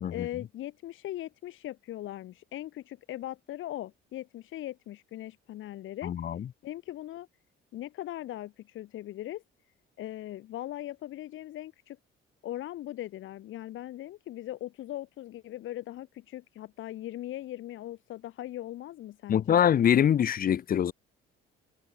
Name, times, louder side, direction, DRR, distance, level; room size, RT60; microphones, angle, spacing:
voice 1, 0.1-6.1 6.6-7.3 7.7-9.4 10.0-12.0 12.4-19.6, left 14 dB, 70° left, 1.2 m, -39 dB
voice 2, 6.0-6.5 19.3-20.9, left 9 dB, 45° left, 0.8 m, -24 dB
cardioid pair, 110°, 21 cm